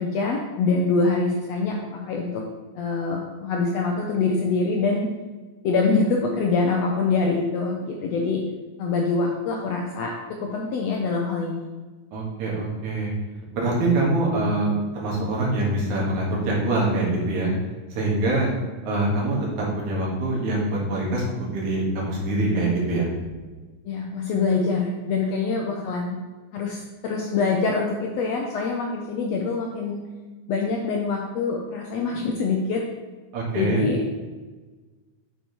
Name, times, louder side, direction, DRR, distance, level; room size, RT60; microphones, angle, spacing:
voice 1, 0.0-2.4 2.7-5.1 5.6-8.4 8.8-11.7 23.8-26.2 26.5-30.0 30.5-32.8 33.5-34.0, left 4 dB, 80° left, 0 dB, 1.5 m, -25 dB
voice 2, 12.1-13.1 13.5-17.5 17.9-18.5 18.8-23.1 33.3-33.8, right 2 dB, 70° right, -4 dB, 3.1 m, -24 dB
7.5 x 6.9 x 3.1 m, 1.3 s
omnidirectional pair, 3.6 m